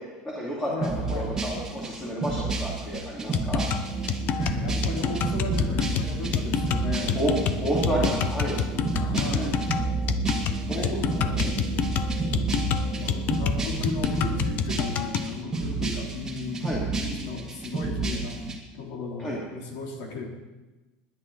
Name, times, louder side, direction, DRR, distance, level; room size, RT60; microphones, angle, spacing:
voice 1, 0.0-3.7 7.1-7.3 7.6-8.6 9.1-9.5 10.3-11.0 11.3-11.5 16.6-16.8 19.2-19.4, equal, 15° left, -5 dB, 2.9 m, -31 dB
voice 2, 0.7-1.3 4.4-7.2 8.8-9.7 10.5-11.8 12.2-18.4 18.7-20.3, left 3 dB, 65° left, -1 dB, 3.7 m, -36 dB
sound 1, 0.8-18.6, right 3 dB, 15° right, 2.1 m, -31 dB
sound 2, 3.3-15.3, left 9 dB, 45° left, 0.8 m, -28 dB
Organ, 3.6-13.9, right 3 dB, 35° right, 1.3 m, -33 dB
19.5 x 10.0 x 4.2 m, 1.2 s
supercardioid pair, 140°, 4 cm